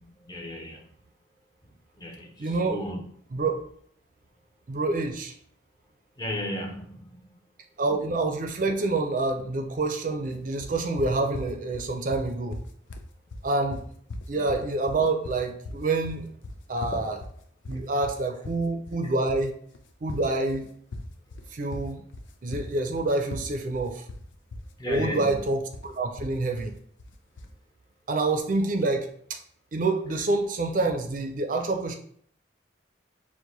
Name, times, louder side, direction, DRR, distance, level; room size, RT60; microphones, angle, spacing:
voice 1, 0.2-0.9 2.0-3.0 6.2-7.4 16.9-17.0 17.7-17.9 24.8-25.4, equal, 20° left, 1 dB, 0.7 m, -35 dB
voice 2, 2.4-2.8 3.3-3.6 4.7-5.3 7.8-12.6 13.4-13.8 14.3-16.3 16.7-17.2 17.7-19.6 20.0-20.7 21.5-22.0 22.4-24.0 24.9-26.7 28.1-29.4 29.7-31.9, right 2 dB, 45° right, 5 dB, 0.5 m, -27 dB
sound 1, 10.6-27.6, left 2 dB, 85° left, 0.5 m, -40 dB
4.6 x 2.1 x 3.9 m, 0.63 s
head